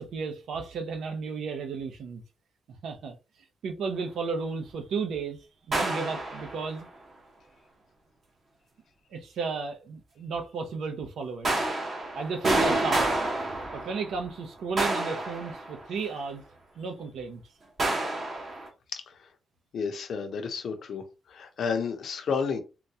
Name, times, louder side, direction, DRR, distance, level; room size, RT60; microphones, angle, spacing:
voice 1, 0.0-2.2 2.8-3.2 3.6-5.4 5.7-6.9 9.1-11.5 12.1-13.1 13.7-16.4 16.8-17.4, right 4 dB, 80° right, 0.7 m, -33 dB
sound 1, 5.7-6.8 11.4-14.3 14.8-16.1 17.8-18.7, right 2 dB, 35° right, 0.8 m, -29 dB
voice 2, 18.9-19.3 19.7-21.0 21.3-22.6, left 5 dB, 60° left, 0.7 m, -31 dB
3.8 x 2.2 x 2.8 m
wide cardioid pair, 180°, 0 cm